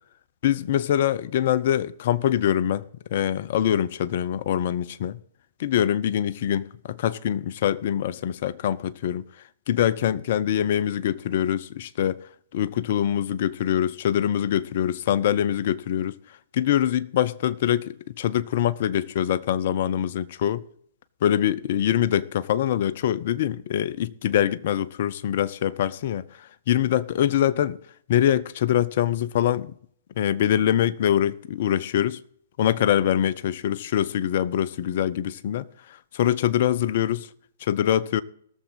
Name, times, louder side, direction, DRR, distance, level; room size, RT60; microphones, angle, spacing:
voice 1, 0.4-2.8 3.1-5.2 5.6-9.2 9.7-12.2 12.5-16.2 16.5-20.6 21.2-26.3 26.7-27.8 28.1-29.7 30.2-32.2 32.6-35.7 36.1-37.3 37.7-38.2, left 10 dB, 50° left, 0.5 m, -24 dB
18.5 x 7.1 x 4.1 m
figure-of-eight pair, 120°, 0 cm